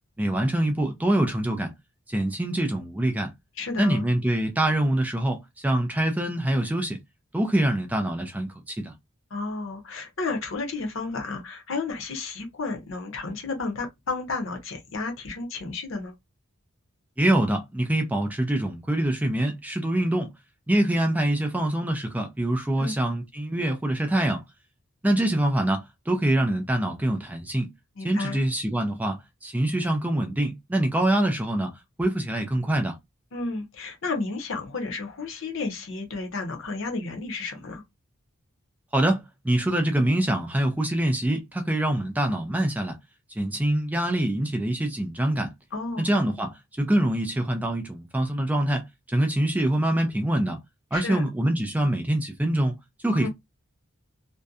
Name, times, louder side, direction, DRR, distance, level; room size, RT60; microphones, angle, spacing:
voice 1, 0.2-1.7 2.1-3.3 3.8-7.0 7.3-8.9 17.2-20.3 20.7-24.4 25.0-27.7 28.0-31.7 32.0-33.0 38.9-43.0 43.3-45.5 46.0-50.6 50.9-53.3, right 1 dB, 5° right, 0.3 m, -25 dB
voice 2, 3.6-4.1 9.3-16.1 22.8-23.0 28.0-28.4 33.3-37.8 45.7-46.1 50.9-51.2 53.2-53.3, left 3 dB, 60° left, 0.7 m, -32 dB
2.6 x 2.1 x 2.3 m
head